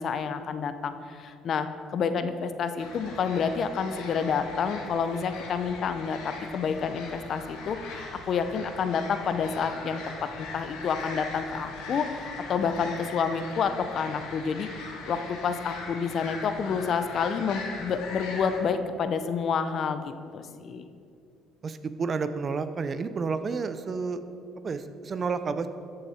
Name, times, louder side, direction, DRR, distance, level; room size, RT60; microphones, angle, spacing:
voice 1, 0.0-10.0 10.4-20.8, left 6 dB, 50° left, 10 dB, 0.7 m, -29 dB
sound 1, 2.8-18.6, left 3 dB, 80° left, 1.8 m, -40 dB
voice 2, 21.6-24.2 24.6-25.7, right 4 dB, 40° right, 11 dB, 0.6 m, -30 dB
13.5 x 6.6 x 4.3 m, 2.5 s
cardioid pair, 95°, 0 cm